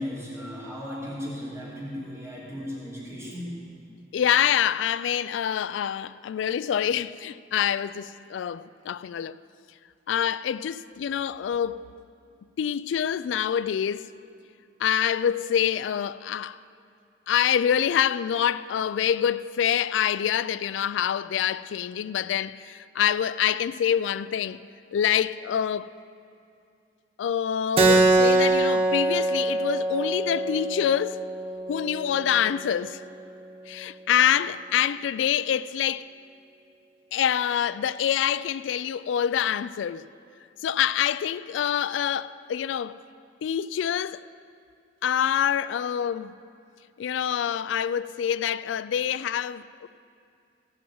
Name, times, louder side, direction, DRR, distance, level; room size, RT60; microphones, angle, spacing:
voice 1, 0.0-3.6, left 1 dB, 15° right, 2.7 m, -36 dB
voice 2, 4.1-9.4 10.1-11.9 12.6-14.1 14.8-16.6 17.3-24.6 24.9-25.9 27.2-31.2 31.7-33.0 33.7-36.1 37.1-40.0 40.6-43.0 43.4-44.2 45.0-46.3 47.0-49.9, left 9 dB, 85° left, 0.3 m, -26 dB
Keyboard (musical), 27.8-32.9, right 2 dB, 30° right, 0.7 m, -24 dB
16.5 x 6.2 x 7.6 m
head